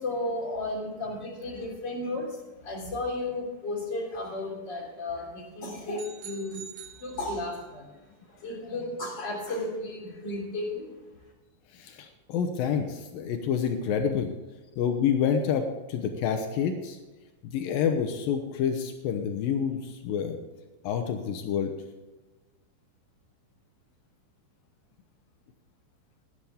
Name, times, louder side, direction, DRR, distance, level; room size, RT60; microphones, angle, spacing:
voice 1, 0.0-6.6 7.0-7.9 8.2-10.9, left 2 dB, 25° left, -1 dB, 3.2 m, -34 dB
sound 1, 6.0-7.8, right 7 dB, 60° right, 2.1 m, -46 dB
voice 2, 11.8-14.3 14.8-15.6 15.9-17.0 17.4-20.4 20.8-21.7, left 7 dB, 90° left, 5 dB, 2.0 m, -28 dB
18.0 x 10.0 x 3.6 m, 1.2 s
omnidirectional pair, 5.5 m